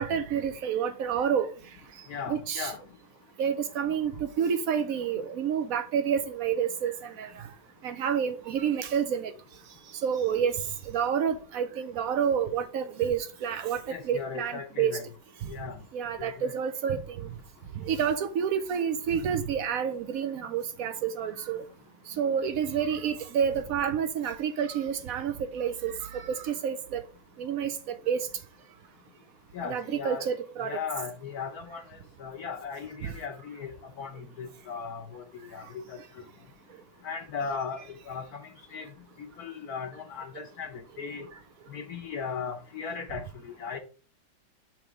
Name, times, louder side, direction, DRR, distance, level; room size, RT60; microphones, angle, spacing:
voice 1, 0.0-1.5 2.3-2.7 3.4-7.3 7.8-9.3 10.0-10.6 10.9-15.0 15.9-17.3 17.8-21.6 22.2-27.0 27.4-28.3 29.6-30.8, right 7 dB, 75° right, 0.8 m, -29 dB
voice 2, 2.1-2.8 13.9-15.1 15.5-15.8 16.2-16.5 29.5-30.3 30.6-36.0 37.0-38.9 39.2-41.3 41.7-43.8, left 6 dB, 65° left, 1.0 m, -37 dB
6.0 x 3.4 x 4.9 m
omnidirectional pair, 2.1 m